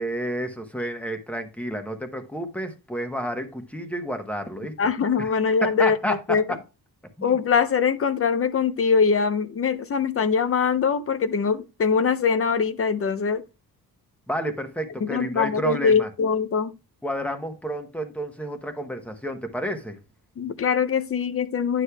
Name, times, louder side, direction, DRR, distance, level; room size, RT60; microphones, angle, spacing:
voice 1, 0.0-4.7 5.2-5.3 5.8-6.6 7.2-7.4 14.3-16.1 17.0-20.0, equal, 5° left, 1.0 m, -30 dB
voice 2, 4.8-6.4 7.2-13.4 15.0-16.7 20.4-21.8, left 6 dB, 40° left, 0.5 m, -22 dB
10.0 x 6.3 x 2.3 m
wide cardioid pair, 145°, 36 cm